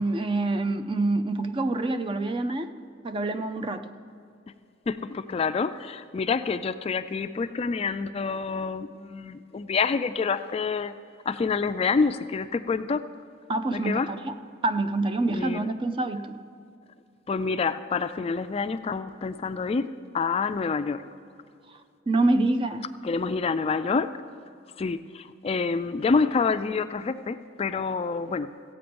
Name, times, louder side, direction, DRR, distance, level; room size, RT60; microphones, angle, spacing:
voice 1, 0.0-2.7 3.0-3.9 13.5-14.4 14.6-16.4 22.1-22.9, right 2 dB, 25° right, 9 dB, 0.5 m, -26 dB
voice 2, 4.9-10.9 11.3-13.0 13.7-14.1 15.3-15.7 17.3-21.0 23.0-24.1 24.8-28.5, left 4 dB, 30° left, 11 dB, 0.3 m, -27 dB
15.0 x 8.6 x 5.2 m, 2.5 s
head